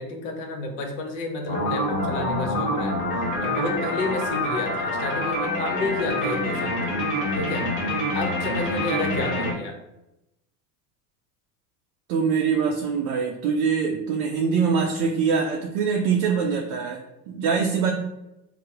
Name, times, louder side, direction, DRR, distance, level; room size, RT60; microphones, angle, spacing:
voice 1, 0.0-3.0 3.4-6.9 7.3-7.8 8.1-9.8, left 2 dB, 60° left, 3 dB, 0.8 m, -30 dB
sound 1, 1.5-9.5, left 1 dB, 40° left, 1.2 m, -26 dB
voice 2, 12.1-17.9, right 6 dB, 50° right, 1 dB, 0.5 m, -23 dB
3.3 x 2.0 x 2.9 m, 0.90 s
hypercardioid pair, 85°, 49 cm